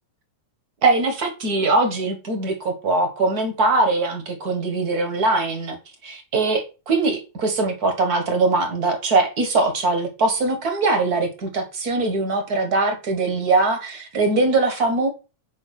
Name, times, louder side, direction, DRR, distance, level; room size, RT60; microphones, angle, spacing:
voice 1, 0.8-5.8 6.0-15.1, right 3 dB, 45° right, 1.4 m, -21 dB
6.4 x 5.0 x 6.5 m
omnidirectional pair, 3.5 m